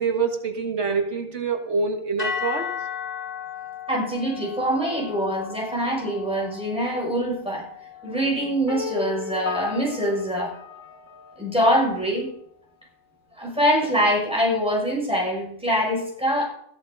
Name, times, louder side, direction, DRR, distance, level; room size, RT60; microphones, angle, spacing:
voice 1, 0.0-2.7, right 4 dB, 75° right, 3 dB, 1.9 m, -25 dB
sound 1, 2.2-10.5, left 7 dB, 50° left, 2.4 m, -36 dB
voice 2, 3.9-7.6 8.0-10.5 11.4-12.3 13.3-16.5, equal, 5° right, -3 dB, 6.6 m, -24 dB
sound 2, 8.7-11.6, left 5 dB, 75° left, 2.1 m, -35 dB
14.5 x 12.5 x 4.0 m, 0.68 s
omnidirectional pair, 1.2 m